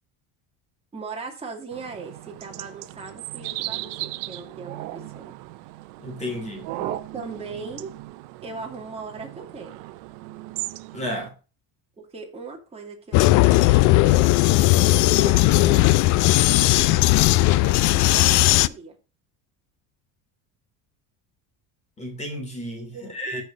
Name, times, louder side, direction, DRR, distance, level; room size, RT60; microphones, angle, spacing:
voice 1, 0.9-5.3 6.7-7.9 8.4-9.7 12.0-16.1 16.6-19.0 22.9-23.4, right 4 dB, 15° right, 2.6 m, -39 dB
sound 1, 1.7-11.3, right 18 dB, 80° right, 0.7 m, -37 dB
voice 2, 6.0-6.7 10.9-11.3 22.0-23.4, equal, 20° left, 2.9 m, -32 dB
Vehicle, 13.1-18.7, left 18 dB, 55° left, 0.5 m, -17 dB
13.5 x 4.6 x 5.1 m
cardioid pair, 160°, 37 cm